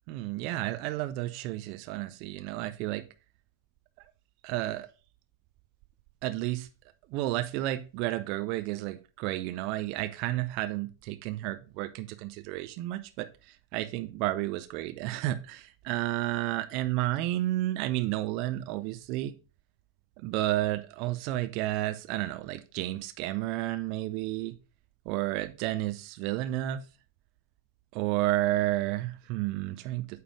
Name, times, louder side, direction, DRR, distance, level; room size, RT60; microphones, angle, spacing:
voice 1, 0.1-3.1 4.4-4.9 6.2-6.7 7.1-19.3 20.2-24.6 25.1-26.8 27.9-30.2, right 16 dB, 45° right, 0.5 m, -31 dB
8.8 x 3.4 x 4.9 m
figure-of-eight pair, 90°, 0 cm